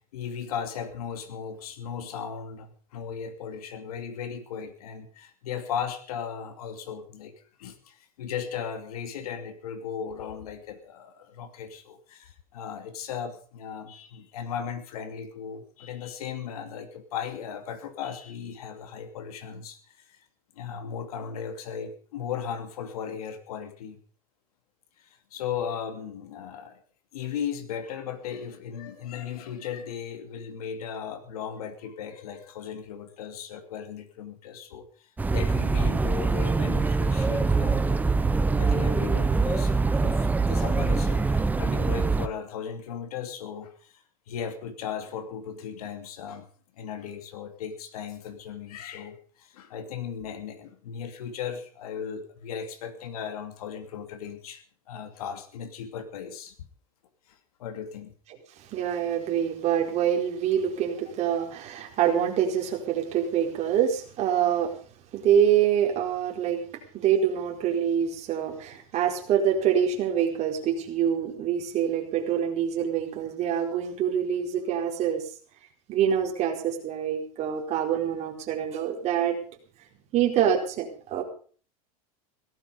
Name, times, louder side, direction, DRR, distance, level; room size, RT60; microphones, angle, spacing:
voice 1, 0.0-7.3 7.6-20.2 20.6-24.0 25.0-26.8 27.1-38.0 38.6-39.7 40.0-46.5 46.8-56.5 57.3-58.1, left 7 dB, 85° left, 7 dB, 2.9 m, -37 dB
sound 1, 35.2-42.3, right 4 dB, 10° right, 0.9 m, -24 dB
voice 2, 58.6-64.7 65.1-66.6 66.9-75.2 75.9-79.4 80.1-81.2, right 9 dB, 35° right, 1 dB, 4.6 m, -25 dB
17.0 x 13.5 x 5.3 m, 0.43 s
supercardioid pair, 135°, 19 cm